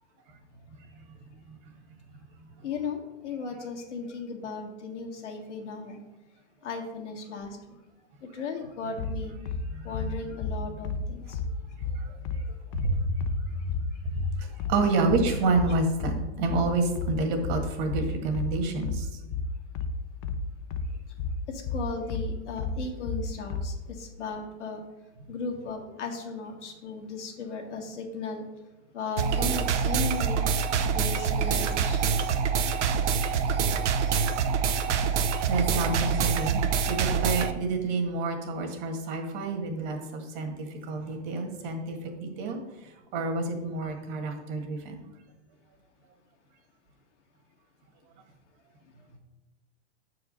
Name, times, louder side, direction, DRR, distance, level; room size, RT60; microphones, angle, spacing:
voice 1, 0.7-1.6 2.4-2.5 9.6-10.2 10.7-10.8 11.2-12.5 12.7-13.6 14.0-19.2 33.3-33.4 34.8-35.0 35.5-45.1, right 3 dB, 45° right, 4 dB, 1.7 m, -30 dB
voice 2, 2.6-6.0 6.6-7.6 8.2-9.4 9.8-11.4 21.5-24.8 25.3-28.4 28.9-30.5 30.8-32.3, left 4 dB, 80° left, 2 dB, 1.9 m, -36 dB
sound 1, 9.0-23.8, left 3 dB, 30° left, 0.5 m, -31 dB
sound 2, 29.2-37.5, right 6 dB, 80° right, 0.8 m, -26 dB
6.5 x 4.8 x 6.5 m, 1.0 s
hypercardioid pair, 140°, 35 cm